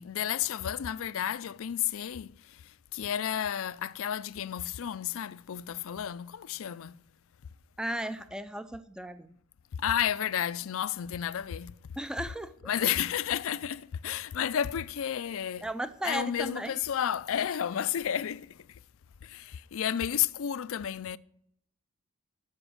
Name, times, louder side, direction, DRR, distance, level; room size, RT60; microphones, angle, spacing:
voice 1, 0.0-7.0 9.7-11.7 12.7-15.7 16.0-18.6 19.2-21.2, left 9 dB, 70° left, 0.4 m, -32 dB
voice 2, 7.8-9.4 12.0-12.7 15.6-16.8, right 1 dB, 5° right, 0.4 m, -35 dB
13.0 x 5.2 x 6.3 m
head